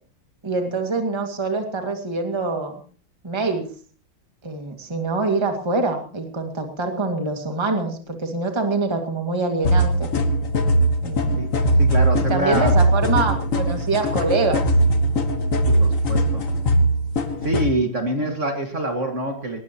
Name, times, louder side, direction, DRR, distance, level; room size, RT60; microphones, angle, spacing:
voice 1, 0.4-2.7 3.2-3.7 4.4-10.1 11.0-11.4 12.3-14.6 18.2-18.3, right 3 dB, 15° right, 4 dB, 2.1 m, -25 dB
sound 1, 9.7-17.7, right 1 dB, 40° left, 1.7 m, -20 dB
voice 2, 11.8-12.8 15.7-16.5 17.4-19.6, right 1 dB, 35° right, 4 dB, 2.3 m, -25 dB
20.0 x 19.5 x 3.0 m, 0.40 s
omnidirectional pair, 2.3 m